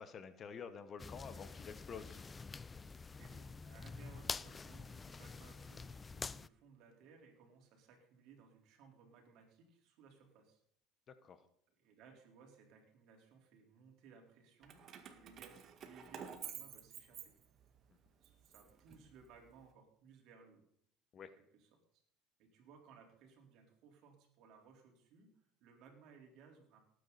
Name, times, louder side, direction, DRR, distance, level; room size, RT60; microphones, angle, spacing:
voice 1, 0.0-2.2 11.1-11.4 21.1-21.3, left 6 dB, 35° left, 12 dB, 1.2 m, -49 dB
sound 1, 1.0-6.5, left 4 dB, 20° left, 0.4 m, -47 dB
voice 2, 3.1-10.6 11.7-14.8 15.1-17.4 18.2-20.7 21.4-22.0 22.4-26.8, right 5 dB, 60° right, 2 dB, 4.1 m, -62 dB
Keys jangling, 14.6-17.8 18.2-19.5, right 8 dB, 40° right, 1.9 m, -51 dB
18.0 x 9.5 x 4.2 m, 0.67 s
supercardioid pair, 115°, 0 cm